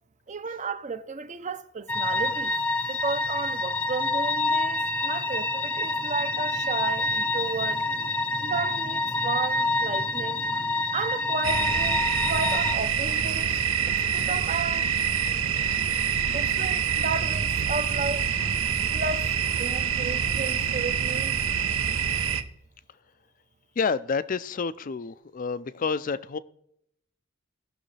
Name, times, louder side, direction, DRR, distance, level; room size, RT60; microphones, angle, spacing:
voice 1, 0.3-2.5 2.9-7.8 8.4-10.7 10.9-13.5 14.1-14.9 16.3-18.3 18.9-19.3 19.6-21.4, right 4 dB, 35° right, 0.6 m, -33 dB
sound 1, 1.9-12.8, left 2 dB, 5° left, 0.7 m, -27 dB
sound 2, 11.4-22.4, right 7 dB, 75° right, 0.8 m, -26 dB
voice 2, 23.8-26.4, left 5 dB, 40° left, 0.4 m, -29 dB
18.5 x 6.3 x 3.3 m
head